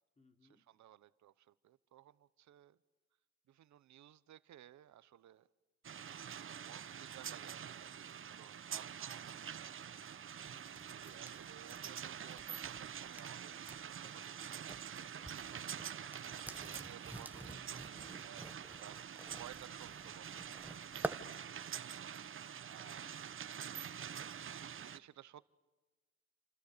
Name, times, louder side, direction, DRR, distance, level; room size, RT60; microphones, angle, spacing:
voice 1, 0.2-0.6 10.4-11.2 15.8-16.2 22.8-23.2, left 2 dB, 25° left, 5 dB, 3.7 m, -68 dB
voice 2, 0.7-2.8 3.5-5.5 6.4-9.9 11.0-15.8 16.3-19.1 19.4-20.4 21.5-21.7 22.7-23.0 24.8-25.5, right 12 dB, 65° right, 16 dB, 1.0 m, -58 dB
sound 1, 5.8-25.0, right 8 dB, 45° right, 1.0 m, -46 dB
sound 2, 10.5-14.8 15.1-21.2, right 1 dB, 5° right, 1.4 m, -49 dB
sound 3, 10.9-18.3 18.6-18.8 19.5-24.8, right 11 dB, 85° right, 1.9 m, -70 dB
28.5 x 27.0 x 6.9 m, 1.2 s
cardioid pair, 90°, 30 cm